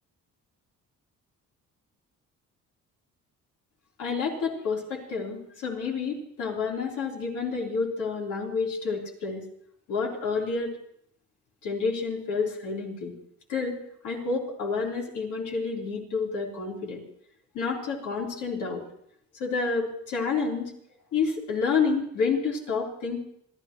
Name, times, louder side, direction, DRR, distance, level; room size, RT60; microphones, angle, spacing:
voice 1, 4.0-9.4 9.9-10.7 11.6-13.1 13.5-17.0 17.5-18.8 19.4-20.7 21.1-23.2, left 4 dB, 90° left, -2 dB, 3.9 m, -29 dB
27.0 x 14.0 x 3.1 m, 0.70 s
cardioid pair, 90°, 30 cm